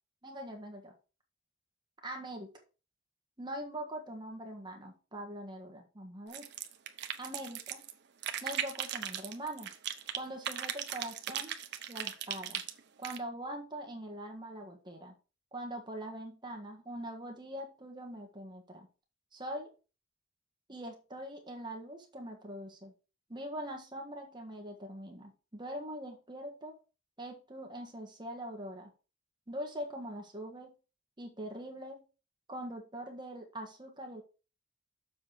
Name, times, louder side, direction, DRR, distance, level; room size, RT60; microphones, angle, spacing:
voice 1, 0.2-0.9 2.0-2.5 3.4-6.5 7.2-7.8 8.4-9.7 10.1-11.5 11.9-12.6 13.0-15.1 15.5-18.9 19.3-19.7 20.7-22.9 23.3-26.7 27.2-28.9 29.5-30.7 31.2-32.0 32.5-34.2, right 1 dB, 25° right, 2 dB, 1.6 m, -42 dB
sound 1, 6.3-7.9 8.2-10.2 10.4-13.2, right 10 dB, 60° right, 0.9 m, -37 dB
7.2 x 4.2 x 6.4 m, 0.33 s
head